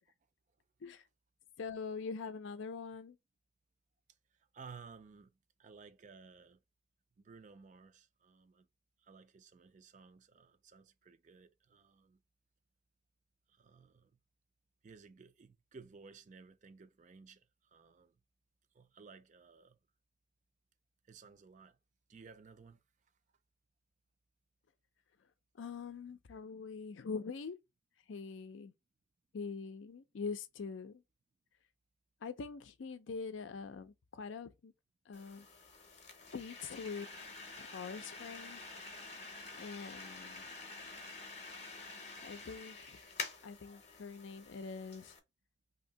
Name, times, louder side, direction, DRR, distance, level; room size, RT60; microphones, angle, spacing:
voice 1, 1.6-3.2 25.6-27.6 28.1-28.7 29.3-31.0 32.2-34.7 35.1-35.5 36.3-37.1 37.7-38.6 39.6-40.5 42.2-43.0 43.4-45.1, left 5 dB, 75° left, 0.4 m, -44 dB
voice 2, 4.3-6.6 7.2-8.7 9.0-12.2 13.5-14.1 14.8-18.2 18.7-19.8 21.0-21.8 22.1-22.8, right 5 dB, 40° right, 0.3 m, -57 dB
sound 1, 35.1-45.2, left 3 dB, 35° left, 0.7 m, -48 dB
2.8 x 2.6 x 3.9 m
head